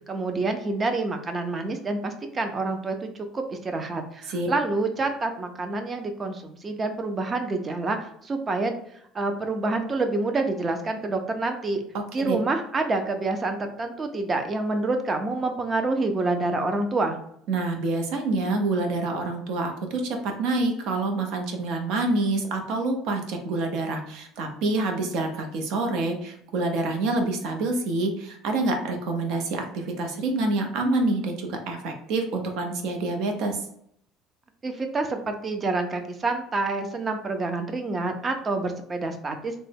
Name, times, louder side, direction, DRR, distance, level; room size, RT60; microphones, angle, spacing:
voice 1, 0.1-3.1 3.3-8.8 9.1-11.8 12.1-17.2 34.6-39.5, right 3 dB, 20° right, 6 dB, 0.4 m, -27 dB
voice 2, 17.5-33.6, right 2 dB, 60° right, 4 dB, 0.6 m, -27 dB
3.3 x 2.0 x 3.3 m, 0.71 s
cardioid pair, 160°, 0 cm